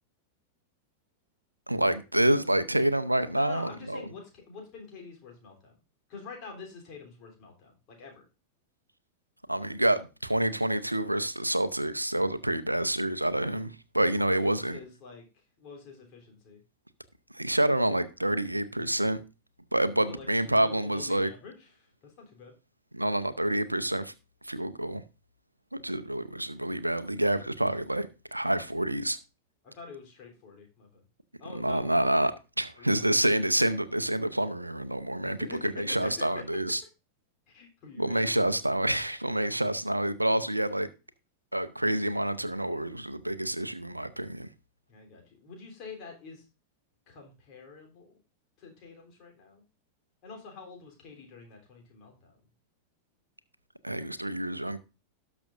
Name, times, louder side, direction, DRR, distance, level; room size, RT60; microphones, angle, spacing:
voice 1, 1.7-4.0 9.5-14.8 17.3-19.2 19.7-21.3 22.9-24.1 24.4-25.0 25.8-29.2 31.5-32.3 32.6-36.8 38.0-40.9 41.5-44.5 53.8-54.8, right 1 dB, 85° right, 0.7 m, -28 dB
voice 2, 3.3-5.7 6.1-8.2 14.1-16.6 20.1-22.5 29.6-31.0 31.4-32.1 32.8-32.9 33.5-33.6 35.2-36.4 37.5-38.6 44.9-46.5 47.1-48.1 48.6-49.6 50.2-52.4, left 4 dB, 40° left, 3.4 m, -47 dB
18.0 x 6.1 x 2.6 m
figure-of-eight pair, 90°, 0 cm